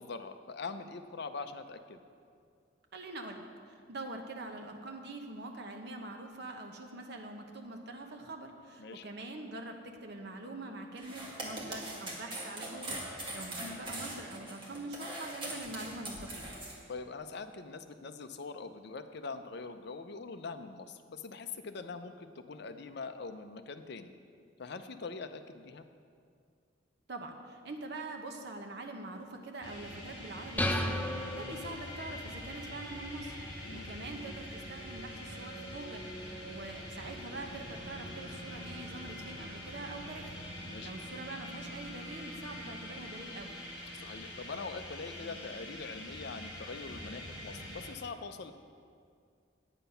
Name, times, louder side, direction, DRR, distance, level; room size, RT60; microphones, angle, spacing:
voice 1, 0.0-2.0 8.8-9.1 13.6-13.8 16.9-24.1 24.6-25.9 33.6-33.9 40.7-40.9 43.9-48.5, left 4 dB, 55° left, 9 dB, 0.6 m, -43 dB
voice 2, 2.9-3.5 3.9-16.6 27.1-40.3 40.8-43.6, right 2 dB, 55° right, 3 dB, 1.0 m, -44 dB
sound 1, 11.0-16.7, right 1 dB, 25° right, 1.8 m, -41 dB
sound 2, 29.6-47.9, equal, 25° left, 2.7 m, -44 dB
sound 3, 30.6-32.2, left 1 dB, 10° left, 0.5 m, -33 dB
9.1 x 8.8 x 5.6 m, 2.3 s
head